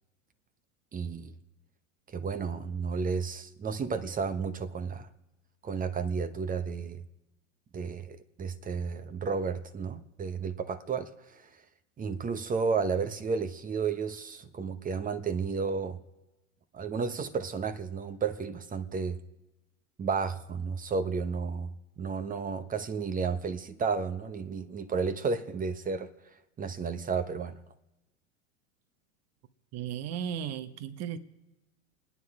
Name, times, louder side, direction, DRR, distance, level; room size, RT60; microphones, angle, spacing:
voice 1, 0.9-1.3 2.1-5.1 5.6-7.0 7.7-11.6 12.0-16.0 16.7-19.2 20.0-27.6, right 5 dB, 20° right, 1.0 m, -32 dB
voice 2, 29.7-31.2, right 9 dB, 40° right, 1.3 m, -35 dB
27.5 x 9.8 x 4.9 m
hypercardioid pair, 105°, 40 cm